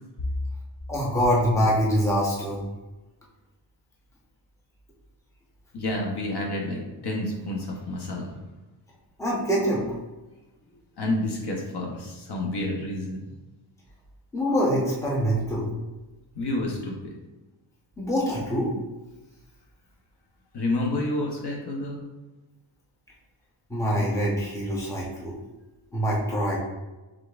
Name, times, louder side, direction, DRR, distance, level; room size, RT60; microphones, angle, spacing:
voice 1, 0.9-2.6 9.2-9.8 14.3-15.7 18.0-18.7 23.7-25.3 25.9-26.6, equal, 5° left, -4 dB, 0.7 m, -24 dB
voice 2, 5.7-8.4 11.0-13.2 16.3-17.1 20.5-22.0, left 1 dB, 55° left, -1 dB, 0.8 m, -29 dB
5.0 x 3.7 x 2.4 m, 1.1 s
wide cardioid pair, 175°, 47 cm